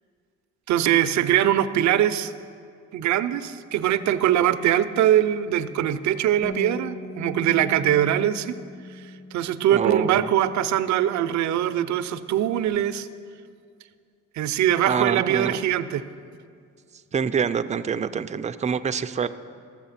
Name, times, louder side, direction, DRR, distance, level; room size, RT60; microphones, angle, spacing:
voice 1, 0.7-2.3 2.9-8.6 8.9-13.1 14.4-16.0, right 11 dB, 70° right, 12 dB, 0.6 m, -22 dB
Bass guitar, 6.4-12.7, left 2 dB, 25° left, 0.6 m, -41 dB
voice 2, 9.7-10.3 14.9-15.6 17.1-19.3, right 6 dB, 25° right, 10 dB, 0.4 m, -26 dB
13.0 x 7.3 x 5.7 m, 2.2 s
cardioid pair, 90°, 30 cm